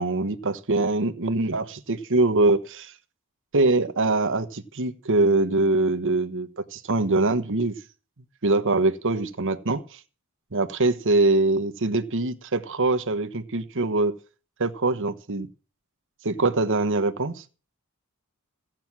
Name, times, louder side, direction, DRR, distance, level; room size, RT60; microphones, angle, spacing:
voice 1, 0.0-2.9 3.5-7.7 8.4-10.0 10.5-14.2 14.6-15.5 16.2-17.4, right 2 dB, 60° right, 1.2 m, -23 dB
15.5 x 8.9 x 6.1 m
head